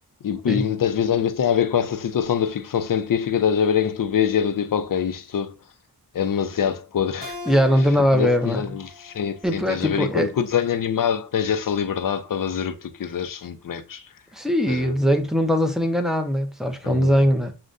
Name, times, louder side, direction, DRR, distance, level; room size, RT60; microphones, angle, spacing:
voice 1, 0.2-5.5 6.1-7.4 8.1-14.0 14.7-14.9 16.8-17.1, left 8 dB, 55° left, 0.5 m, -24 dB
Keyboard (musical), 7.2-10.4, left 3 dB, 25° right, 1.5 m, -41 dB
voice 2, 7.5-8.7 9.4-10.3 14.3-17.5, equal, ahead, 0.6 m, -21 dB
6.4 x 2.2 x 2.5 m
wide cardioid pair, 110°, 40 cm